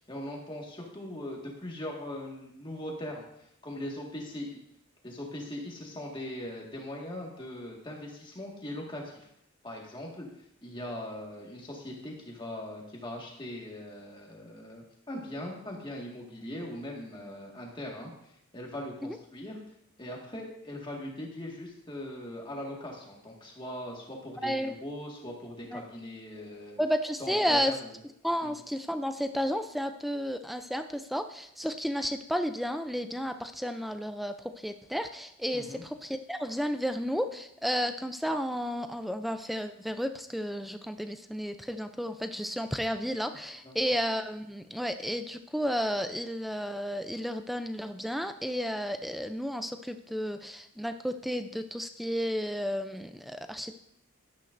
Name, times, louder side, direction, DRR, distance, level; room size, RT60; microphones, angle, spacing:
voice 1, 0.0-4.6 5.0-9.3 9.6-10.3 10.6-19.6 20.0-26.8 27.2-27.9 28.4-28.5 35.5-35.8 43.6-43.8, left 1 dB, 20° left, -1 dB, 1.7 m, -40 dB
voice 2, 24.4-24.7 25.7-25.8 26.8-27.8 28.2-53.7, equal, ahead, 8 dB, 0.4 m, -32 dB
11.5 x 10.0 x 2.6 m, 0.76 s
head